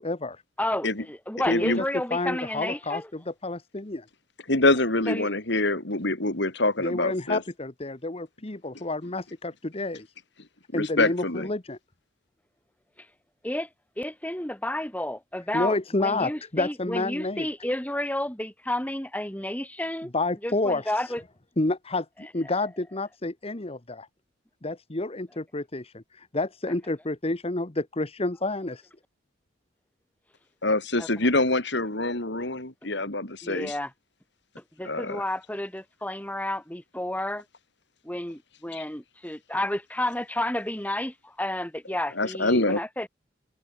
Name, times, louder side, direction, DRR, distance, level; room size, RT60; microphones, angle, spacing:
voice 1, 0.0-0.4 1.5-1.8 2.1-4.0 6.8-10.1 10.7-11.8 15.5-17.5 20.1-21.1 21.6-24.1 24.6-28.9, left 2 dB, 35° left, 1.4 m, -29 dB
voice 2, 0.6-3.1 5.1-5.3 13.0-13.1 13.4-13.7 14.0-20.1 20.4-21.2 22.2-22.5 31.0-31.1 32.8-32.9 33.4-33.9 34.6-37.5 38.0-43.1, left 1 dB, 10° left, 3.4 m, -31 dB
voice 3, 1.5-1.8 4.5-7.4 10.7-11.5 30.6-33.7 34.8-35.2 38.7-38.8 42.2-42.8, left 2 dB, 65° left, 3.9 m, -25 dB
head